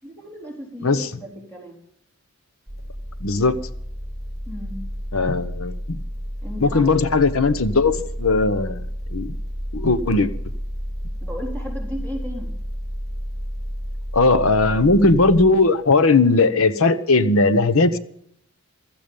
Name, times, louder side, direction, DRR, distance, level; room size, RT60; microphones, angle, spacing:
voice 1, 0.0-1.8 4.5-4.9 6.4-6.9 11.2-12.5, equal, 10° left, 3.7 m, -35 dB
sound 1, 2.7-15.5, equal, 15° right, 3.8 m, -31 dB
voice 2, 3.2-3.6 5.1-6.0 6.6-8.8 9.1-9.4 9.7-10.3 14.1-18.0, left 3 dB, 75° left, 1.0 m, -18 dB
15.5 x 13.5 x 5.4 m
head